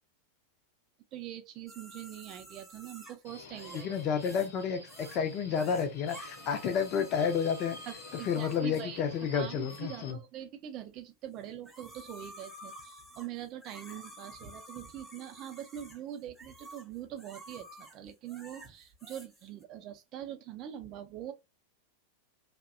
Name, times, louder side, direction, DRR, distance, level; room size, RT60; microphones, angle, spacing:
voice 1, 1.1-3.9 7.9-9.0 9.3-21.3, right 11 dB, 35° right, 0.5 m, -43 dB
sound 1, 1.7-4.6 4.9-5.2 5.5-8.8 9.7-9.8 11.4-19.6, equal, 5° right, 0.7 m, -51 dB
Subway metro underground, 3.2-10.1, left 3 dB, 60° left, 0.9 m, -49 dB
voice 2, 3.8-7.8 8.2-10.2, left 7 dB, 35° left, 0.5 m, -30 dB
2.6 x 2.1 x 2.4 m
figure-of-eight pair, 90°, 0 cm